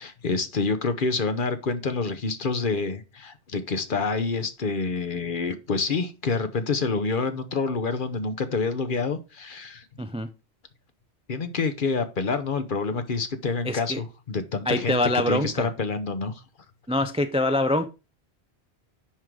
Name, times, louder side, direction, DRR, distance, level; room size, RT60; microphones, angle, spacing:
voice 1, 0.0-9.8 11.3-15.0 15.3-16.3, left 4 dB, 50° left, 1.0 m, -27 dB
voice 2, 10.0-10.3 13.6-14.0 14.7-15.7 16.9-17.9, left 1 dB, 10° right, 0.3 m, -24 dB
10.0 x 3.8 x 4.7 m
omnidirectional pair, 1.1 m